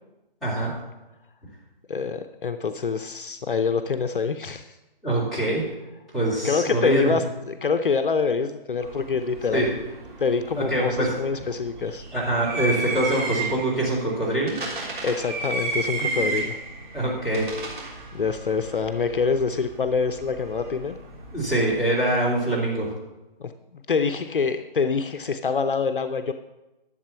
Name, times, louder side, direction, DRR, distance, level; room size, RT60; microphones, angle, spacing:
voice 1, 0.4-0.7 5.0-5.7 6.1-7.2 9.5-9.7 10.6-11.1 12.1-14.6 16.0-16.4 16.9-17.5 21.3-22.9, right 1 dB, ahead, -11 dB, 2.6 m, -24 dB
voice 2, 1.9-4.8 6.4-9.8 10.2-12.0 15.0-16.6 18.1-21.0 23.4-23.5 23.9-26.3, left 5 dB, 60° left, 8 dB, 0.7 m, -25 dB
sound 1, 8.8-21.8, right 3 dB, 50° right, 3.5 m, -34 dB
11.0 x 7.7 x 5.8 m, 1.0 s
figure-of-eight pair, 155°, 30 cm